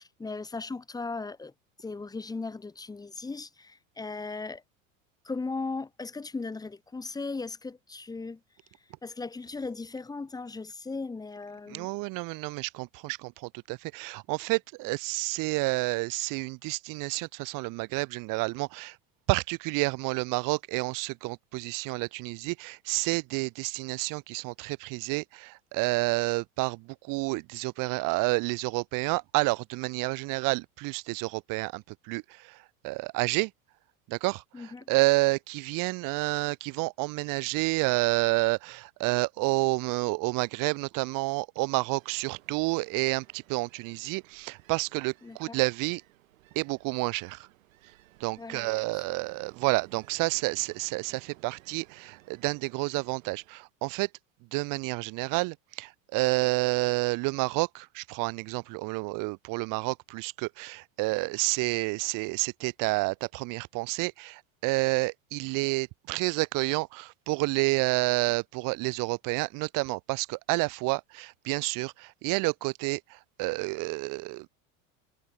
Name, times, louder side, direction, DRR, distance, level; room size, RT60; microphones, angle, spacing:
voice 1, 0.0-1.5 1.8-4.6 5.2-8.4 9.0-11.9 34.5-34.9 45.2-45.6 48.4-49.0, left 3 dB, 10° left, 0.8 m, -37 dB
voice 2, 11.7-18.9 19.3-32.2 32.5-32.6 32.8-33.5 34.1-34.4 34.9-46.0 46.5-47.5 48.2-54.1 54.5-73.0 73.4-74.5, right 25 dB, 55° right, 1.1 m, -29 dB
Ocean, 41.5-53.7, right 17 dB, 80° right, 5.6 m, -58 dB
supercardioid pair, 105°, 40 cm